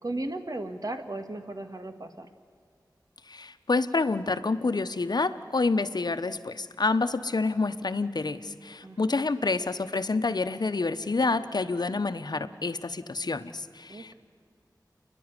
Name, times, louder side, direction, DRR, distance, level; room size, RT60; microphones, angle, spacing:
voice 1, 0.0-2.3 8.8-9.2 13.9-14.1, right 2 dB, 55° right, 7 dB, 1.9 m, -36 dB
voice 2, 3.3-14.1, left 3 dB, 65° left, 10 dB, 1.0 m, -28 dB
29.0 x 11.0 x 9.8 m, 2.3 s
wide cardioid pair, 45°, 8 cm